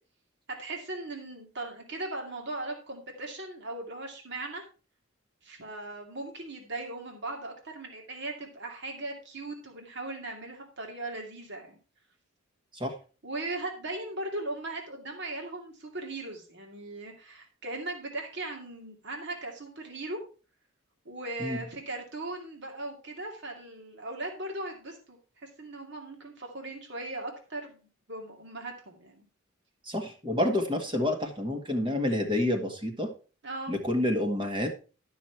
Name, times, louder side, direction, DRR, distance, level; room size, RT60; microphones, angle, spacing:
voice 1, 0.5-4.6 5.4-11.8 13.2-20.2 21.1-27.8 28.1-29.2 33.4-33.7, right 2 dB, 55° right, 2 dB, 2.3 m, -38 dB
voice 2, 29.8-33.1 33.7-34.7, left 1 dB, 25° right, 4 dB, 1.6 m, -28 dB
12.0 x 6.3 x 4.4 m, 0.35 s
head